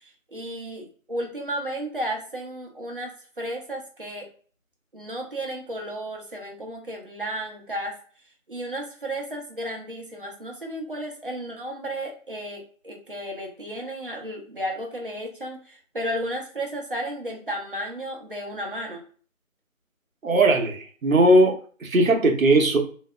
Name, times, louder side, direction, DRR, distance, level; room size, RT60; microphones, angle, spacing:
voice 1, 0.0-4.3 4.9-7.9 8.5-19.0, right 1 dB, 40° right, 0 dB, 0.6 m, -33 dB
voice 2, 20.2-22.8, right 1 dB, 75° right, 2 dB, 0.8 m, -19 dB
2.7 x 2.4 x 2.2 m, 0.43 s
figure-of-eight pair, 160°, 41 cm